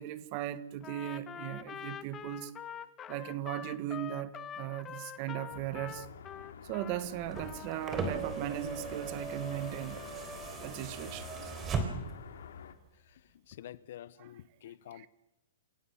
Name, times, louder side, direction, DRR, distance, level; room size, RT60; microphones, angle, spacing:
voice 1, 0.0-2.5 3.1-6.1 6.6-10.0 10.6-11.5 14.2-14.3 14.9-15.1, right 13 dB, 35° right, 1.4 m, -38 dB
Trumpet, 0.8-7.0 7.3-8.1, left 9 dB, 15° left, 1.0 m, -45 dB
sound 1, 5.5-12.7, left 8 dB, 75° left, 2.6 m, -49 dB
sound 2, 7.2-12.3 13.5-13.6, right 4 dB, 15° right, 3.6 m, -38 dB
voice 2, 13.5-15.1, left 11 dB, 60° left, 0.9 m, -48 dB
28.5 x 17.0 x 7.2 m
hypercardioid pair, 160°, 0 cm